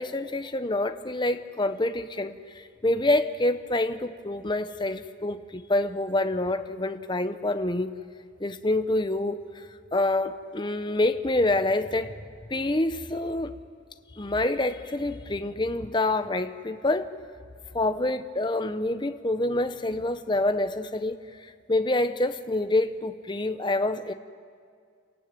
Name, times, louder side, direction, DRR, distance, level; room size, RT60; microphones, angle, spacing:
voice 1, 0.0-8.0 8.4-9.7 9.9-12.1 12.5-13.5 14.2-17.1 17.7-24.1, left 2 dB, 25° left, 9 dB, 0.8 m, -27 dB
28.5 x 16.0 x 9.4 m, 2.2 s
head